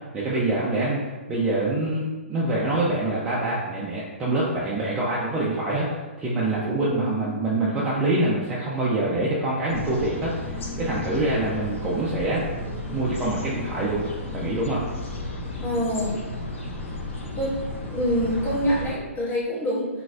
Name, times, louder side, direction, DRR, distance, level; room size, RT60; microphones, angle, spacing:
voice 1, 0.1-1.0 1.3-5.8 6.2-12.4 12.9-14.0 14.3-14.8, right 2 dB, 10° right, -6 dB, 0.4 m, -25 dB
voice 2, 6.8-7.3 15.6-16.1 17.3-17.5 17.9-19.9, equal, 25° left, -9 dB, 1.4 m, -26 dB
sound 1, 9.7-19.0, left 2 dB, 65° left, 0.7 m, -33 dB
3.9 x 2.5 x 2.4 m, 1.3 s
hypercardioid pair, 140°, 7 cm